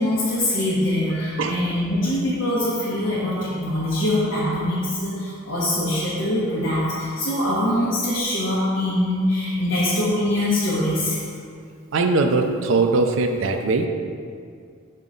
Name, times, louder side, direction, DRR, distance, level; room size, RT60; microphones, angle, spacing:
voice 1, 0.0-11.2, left 1 dB, 65° left, -11 dB, 1.2 m, -23 dB
voice 2, 11.9-13.9, right 3 dB, 70° right, 5 dB, 0.4 m, -20 dB
5.6 x 4.9 x 3.8 m, 2.2 s
head